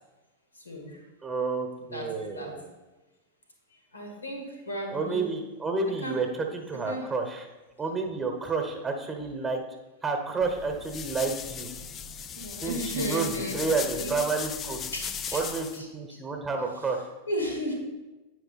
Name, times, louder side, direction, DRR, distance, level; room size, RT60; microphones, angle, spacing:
voice 1, 0.6-1.0 1.8-2.6 3.9-5.3 6.0-6.2 6.9-7.1 12.4-14.2 14.9-15.4 15.7-15.9 17.3-17.7, equal, 80° left, 2 dB, 1.8 m, -35 dB
voice 2, 1.2-2.7 4.9-7.5 7.8-9.6 10.0-11.7 12.6-14.8 15.3-15.7 15.9-17.1, right 4 dB, 15° right, 4 dB, 1.1 m, -30 dB
sound 1, 10.4-15.8, left 7 dB, 30° left, 0.4 m, -37 dB
8.7 x 4.9 x 4.2 m, 1.1 s
figure-of-eight pair, 90°, 0 cm